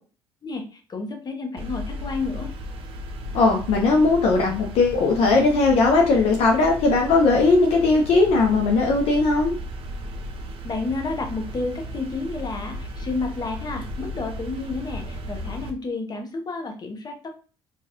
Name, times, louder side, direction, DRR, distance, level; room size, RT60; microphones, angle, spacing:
voice 1, 0.4-2.5 10.6-17.3, left 3 dB, 30° left, 4 dB, 1.0 m, -31 dB
sound 1, 1.6-15.7, equal, 45° right, 0.7 m, -35 dB
voice 2, 3.3-9.5, left 3 dB, 55° left, 1 dB, 0.6 m, -18 dB
4.5 x 2.4 x 2.8 m, 0.37 s
figure-of-eight pair, 50°, 13 cm